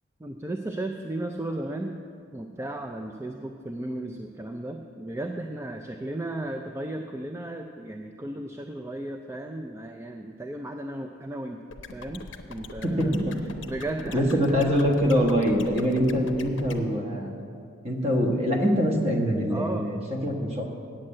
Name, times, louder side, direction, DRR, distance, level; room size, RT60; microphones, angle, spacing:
voice 1, 0.2-2.0 2.3-11.6 11.9-13.1 13.6-14.6 19.5-19.9, right 1 dB, 15° right, 4 dB, 0.3 m, -35 dB
sound 1, 11.7-16.8, left 3 dB, 65° left, 0.7 m, -42 dB
voice 2, 12.8-13.3 14.1-17.3 17.8-20.6, equal, 30° right, 1 dB, 1.3 m, -24 dB
8.7 x 7.7 x 7.6 m, 2.4 s
head